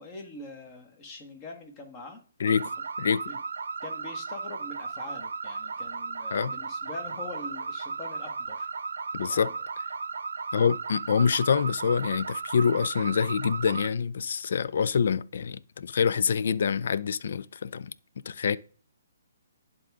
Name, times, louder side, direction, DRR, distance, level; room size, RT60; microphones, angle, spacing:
voice 1, 0.0-2.2 3.3-3.4 3.8-8.7 9.2-9.6, left 3 dB, 30° left, 1.7 m, -43 dB
voice 2, 2.4-2.7 3.0-3.2 6.3-6.5 9.1-9.5 10.5-17.9 18.3-18.6, left 6 dB, 60° left, 0.4 m, -26 dB
sound 1, 2.5-13.9, right 4 dB, 75° right, 0.5 m, -35 dB
11.0 x 3.7 x 3.6 m
figure-of-eight pair, 135°, 0 cm